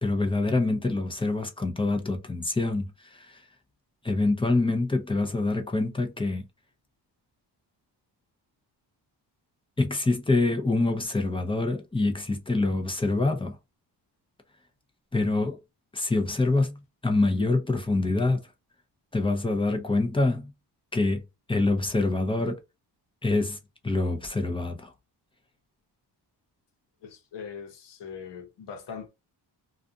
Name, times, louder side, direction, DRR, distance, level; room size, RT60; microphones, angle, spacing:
voice 1, 0.0-3.4 4.0-6.5 9.8-13.6 15.1-15.6 15.9-18.4 19.1-20.5 20.9-21.2 21.5-22.6 23.2-23.6 23.8-24.9, left 2 dB, 10° left, 0.6 m, -25 dB
voice 2, 27.0-29.1, left 6 dB, 75° left, 0.9 m, -41 dB
2.4 x 2.4 x 2.5 m
cardioid pair, 125°, 42 cm